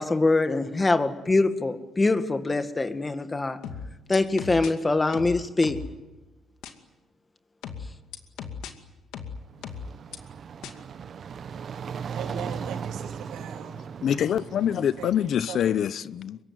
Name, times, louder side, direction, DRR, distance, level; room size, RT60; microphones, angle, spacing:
voice 1, 0.0-3.6 4.1-5.8, left 3 dB, 20° left, 2.0 m, -24 dB
sound 1, 3.6-4.7 5.1-5.9 6.6-6.7 7.6-8.7 9.1-10.2 10.6-10.7, left 6 dB, 90° left, 2.4 m, -37 dB
sound 2, 9.4-15.5, right 7 dB, 55° right, 1.0 m, -37 dB
voice 2, 12.1-13.8 15.0-15.8, right 8 dB, 90° right, 3.3 m, -40 dB
voice 3, 14.0-16.4, left 9 dB, 65° left, 0.9 m, -25 dB
24.5 x 22.0 x 9.3 m
cardioid pair, 90°, 0 cm